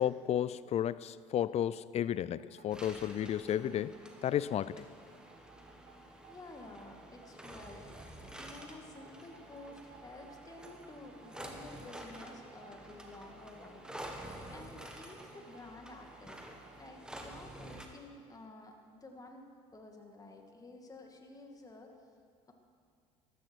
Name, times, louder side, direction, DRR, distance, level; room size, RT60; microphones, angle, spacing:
voice 1, 0.0-4.9, left 10 dB, 40° left, 18 dB, 0.5 m, -33 dB
sound 1, 2.3-16.9, right 8 dB, 60° right, 1.3 m, -61 dB
sound 2, 2.7-17.9, right 1 dB, 5° right, 1.8 m, -50 dB
voice 2, 6.3-7.9 8.3-13.9 14.5-16.4 16.8-21.9, left 2 dB, 20° left, 3 dB, 2.3 m, -51 dB
14.0 x 13.5 x 4.8 m, 2.2 s
hypercardioid pair, 70°, 16 cm